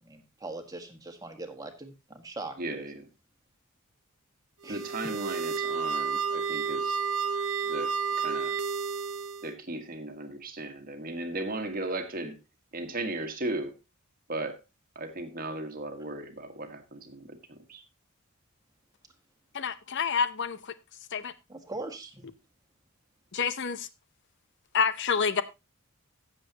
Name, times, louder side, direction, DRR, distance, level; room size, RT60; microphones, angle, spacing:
voice 1, 0.0-2.8 4.6-4.8 21.5-22.3, right 2 dB, 15° right, 5 dB, 1.7 m, -41 dB
voice 2, 2.6-3.1 4.7-7.0 7.7-8.6 9.4-12.4 12.7-13.8 14.3-14.6 14.9-17.8, right 2 dB, 40° right, 6 dB, 1.5 m, -36 dB
sound 1, 4.6-9.5, right 5 dB, 70° right, 0.8 m, -31 dB
voice 3, 19.5-20.7 21.1-21.3 23.3-23.9 24.7-25.4, left 6 dB, 55° left, 13 dB, 0.7 m, -28 dB
15.0 x 7.5 x 2.9 m, 0.25 s
head